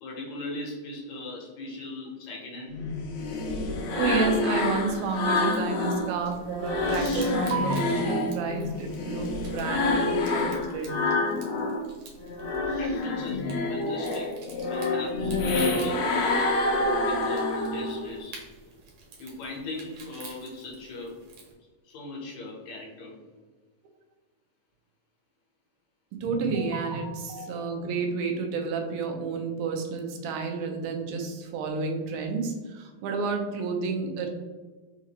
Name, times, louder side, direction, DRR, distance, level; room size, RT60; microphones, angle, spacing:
voice 1, 0.0-2.8 12.8-13.4 13.7-14.3 14.6-16.4 17.0-18.4 19.2-21.2 21.8-23.2, left 2 dB, 70° left, -3 dB, 1.7 m, -39 dB
sound 1, 2.7-6.1 6.5-11.8 12.2-18.1, left 2 dB, 85° left, 1.5 m, -27 dB
voice 2, 3.9-11.0 26.1-34.3, right 4 dB, 90° right, 2 dB, 2.5 m, -30 dB
sound 2, 4.6-21.5, right 4 dB, 70° right, 1.6 m, -51 dB
6.1 x 2.5 x 2.8 m, 1.4 s
omnidirectional pair, 4.1 m